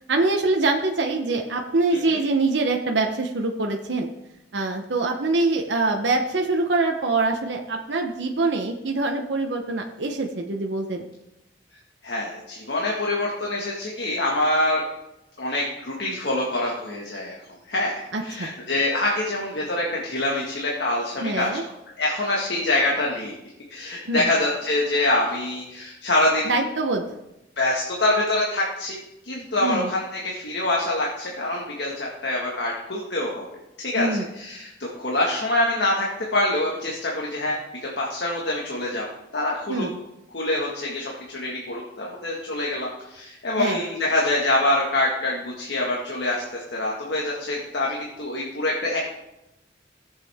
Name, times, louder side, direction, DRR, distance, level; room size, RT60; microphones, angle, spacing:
voice 1, 0.1-4.1 4.5-11.1 18.1-18.5 21.2-21.6 24.1-24.3 26.4-27.0 29.6-29.9 33.9-34.3 39.7-40.0 43.6-43.8, right 3 dB, 80° right, 2 dB, 0.9 m, -24 dB
voice 2, 12.0-14.8 15.4-17.4 17.7-21.5 22.0-23.3 23.7-26.6 27.6-33.5 33.8-34.1 34.3-36.1 36.3-39.0 39.3-39.9 40.3-49.0, left 1 dB, 70° left, -2 dB, 1.7 m, -25 dB
17.0 x 7.5 x 3.6 m, 0.92 s
head